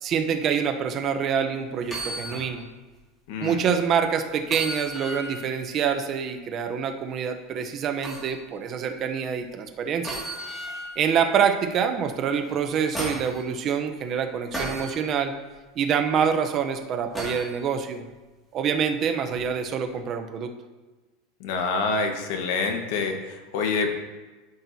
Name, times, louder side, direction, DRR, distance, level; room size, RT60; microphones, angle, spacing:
voice 1, 0.0-2.7 3.4-10.2 11.0-15.3 15.8-18.0 18.5-20.5, right 7 dB, 30° right, 5 dB, 0.7 m, -26 dB
sound 1, 1.8-2.5 2.9-3.0 4.4-5.5 8.0-8.3 10.0-11.0 12.5-13.4 14.5-15.0 17.1-17.5 19.3-19.4, right 1 dB, 5° left, 2.1 m, -34 dB
voice 2, 3.3-3.6 21.4-23.9, left 4 dB, 65° left, 5 dB, 1.2 m, -27 dB
13.0 x 6.0 x 2.7 m, 1.2 s
supercardioid pair, 155°, 0 cm